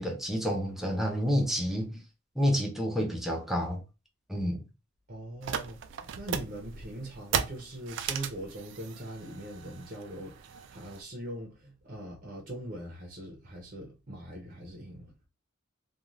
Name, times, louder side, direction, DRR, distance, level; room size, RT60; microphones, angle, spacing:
voice 1, 0.0-1.9 2.4-3.8 4.3-4.6, equal, ahead, 0.6 m, -29 dB
voice 2, 5.1-15.1, right 1 dB, 45° right, 0.7 m, -41 dB
sound 1, 5.4-11.0, right 7 dB, 65° right, 0.3 m, -37 dB
2.5 x 2.3 x 3.0 m
head